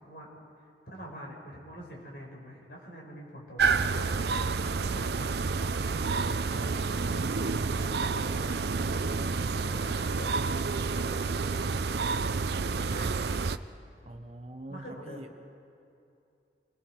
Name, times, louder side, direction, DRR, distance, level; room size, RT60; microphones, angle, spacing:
voice 1, 0.6-4.2 4.8-8.6 9.5-11.8 12.6-13.1 14.7-15.5, equal, 60° left, -2 dB, 5.2 m, -45 dB
sound 1, 3.6-13.6, right 4 dB, 65° right, 0.5 m, -29 dB
voice 2, 14.1-15.3, right 1 dB, 35° right, 5 dB, 1.1 m, -44 dB
28.5 x 21.5 x 4.6 m, 2.7 s
head